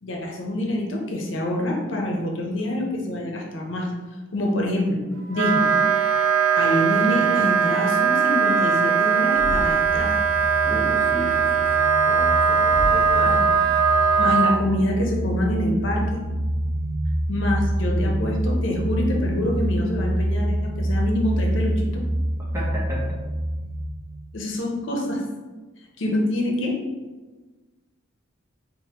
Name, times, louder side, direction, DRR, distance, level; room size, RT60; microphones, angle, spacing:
voice 1, 0.0-3.9 4.3-5.0 5.3-5.7 6.6-10.2 13.1-13.4 14.2-16.2 17.3-22.0 24.3-25.2 26.0-26.8, left 1 dB, 65° left, 0 dB, 0.7 m, -26 dB
Wind instrument woodwind instrument, 5.3-14.6, right 6 dB, 75° right, 0.3 m, -20 dB
Thump thud, 9.3-10.0 12.7-13.2, equal, 25° left, 1.3 m, -30 dB
sound 1, 9.8-23.8, right 1 dB, 45° right, 0.8 m, -27 dB
voice 2, 10.6-11.8 12.1-13.4 22.5-23.2, equal, 15° right, -6 dB, 0.8 m, -33 dB
5.0 x 2.6 x 2.9 m, 1.3 s
head